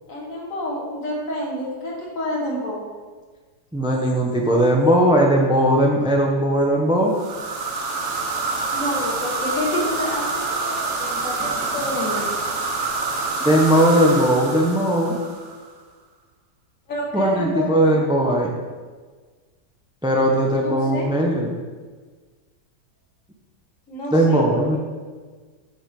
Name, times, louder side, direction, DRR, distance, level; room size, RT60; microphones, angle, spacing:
voice 1, 0.1-2.8 8.7-12.3 12.8-13.3 16.9-18.3 20.6-21.1 23.9-24.6, left 1 dB, 50° left, -2 dB, 1.9 m, -29 dB
voice 2, 3.7-7.1 13.4-15.2 17.1-18.6 20.0-21.5 24.1-24.8, right 1 dB, 5° right, 0 dB, 0.3 m, -18 dB
sound 1, 7.1-15.6, right 3 dB, 50° right, 1.1 m, -26 dB
7.2 x 5.6 x 5.3 m, 1.5 s
omnidirectional pair, 1.8 m